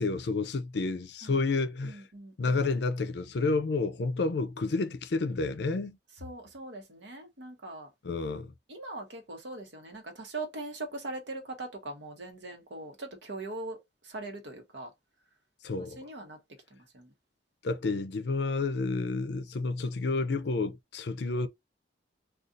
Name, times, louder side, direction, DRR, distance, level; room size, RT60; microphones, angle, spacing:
voice 1, 0.0-2.0 2.4-6.0 8.0-8.5 15.6-16.0 17.6-21.5, left 3 dB, 65° left, 0.5 m, -30 dB
voice 2, 1.8-2.6 6.2-7.9 8.7-14.9 15.8-16.4 16.7-17.1, right 2 dB, 75° right, 1.0 m, -41 dB
2.7 x 2.4 x 3.7 m
head